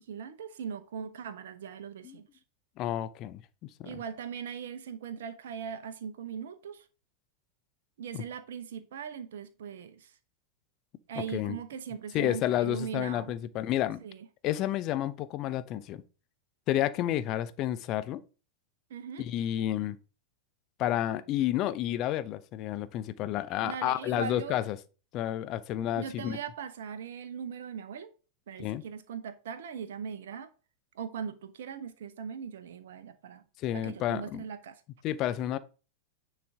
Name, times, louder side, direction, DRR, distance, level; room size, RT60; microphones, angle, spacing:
voice 1, 0.0-2.2 3.8-6.8 8.0-10.1 11.1-13.3 14.0-14.3 18.9-19.2 23.6-24.6 25.9-28.1 28.5-30.5 31.0-33.4 33.7-34.8, right 7 dB, 60° right, 0.7 m, -40 dB
voice 2, 2.8-3.4 3.8-4.0 8.1-8.2 11.3-11.6 12.1-14.0 14.4-16.0 16.7-18.2 19.2-20.0 20.8-24.8 25.1-26.4 28.6-28.8 33.6-34.4 35.0-35.6, left 12 dB, 35° left, 0.5 m, -30 dB
9.3 x 3.3 x 3.6 m
figure-of-eight pair, 90°, 0 cm